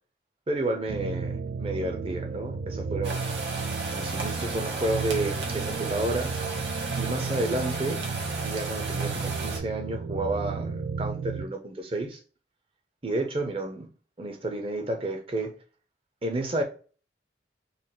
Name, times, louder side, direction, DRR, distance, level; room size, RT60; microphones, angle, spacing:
voice 1, 0.5-3.2 3.9-6.3 7.0-8.0 8.4-12.2 13.0-13.9 14.2-15.5 16.2-16.6, right 2 dB, 30° right, 0.7 m, -31 dB
sound 1, 0.9-11.5, right 4 dB, 55° right, 0.3 m, -33 dB
sound 2, 3.0-9.6, right 3 dB, 80° right, 1.1 m, -35 dB
4.1 x 2.4 x 3.7 m
head